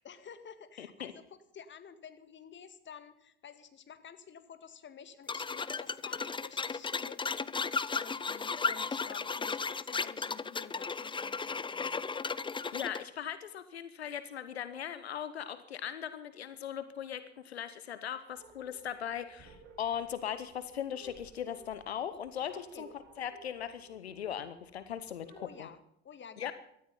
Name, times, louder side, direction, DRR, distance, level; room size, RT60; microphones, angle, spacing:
voice 1, 0.0-7.3 7.9-12.0 22.7-22.8 25.4-26.5, left 7 dB, 35° left, 10 dB, 2.1 m, -51 dB
voice 2, 0.8-1.1 12.7-25.7 26.4-26.5, left 9 dB, 85° left, 12 dB, 0.9 m, -39 dB
sound 1, 5.3-13.0, left 5 dB, 15° left, 0.7 m, -35 dB
sound 2, 18.3-25.6, right 2 dB, 60° right, 6.9 m, -57 dB
17.5 x 13.5 x 5.5 m, 0.75 s
figure-of-eight pair, 60°, 31 cm